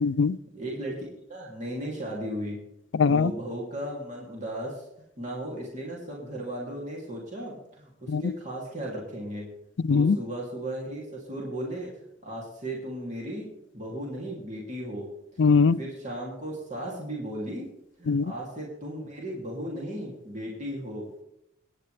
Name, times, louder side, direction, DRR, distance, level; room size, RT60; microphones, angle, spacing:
voice 1, 0.0-0.4 2.9-3.3 8.1-8.3 9.8-10.2 15.4-15.8 18.1-18.3, left 5 dB, 70° left, 16 dB, 0.4 m, -21 dB
voice 2, 0.5-2.6 3.0-4.8 5.2-9.5 9.9-15.1 15.8-17.6 18.0-21.1, right 1 dB, 35° right, -3 dB, 2.8 m, -36 dB
24.5 x 9.8 x 3.4 m, 0.84 s
head